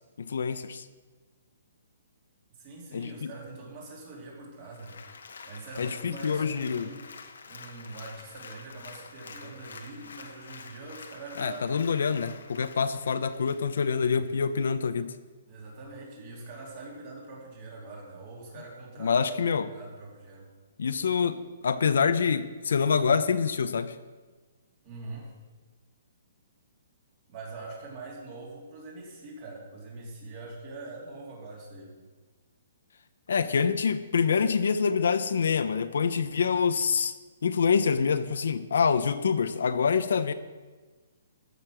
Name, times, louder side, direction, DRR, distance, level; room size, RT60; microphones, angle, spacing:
voice 1, 0.2-0.9 2.9-3.3 5.8-6.9 11.4-15.1 19.0-19.7 20.8-24.0 33.3-37.1 37.4-40.3, left 6 dB, 70° left, 11 dB, 0.7 m, -26 dB
voice 2, 2.6-5.0 5.4-7.0 7.5-11.8 12.8-12.9 15.5-19.3 19.7-20.5 24.8-25.4 27.3-32.0, right 3 dB, 25° right, -3 dB, 3.0 m, -43 dB
Applause, 4.6-14.4 14.8-14.9, left 5 dB, 85° left, 1.3 m, -47 dB
14.5 x 6.7 x 6.1 m, 1.3 s
hypercardioid pair, 175°, 0 cm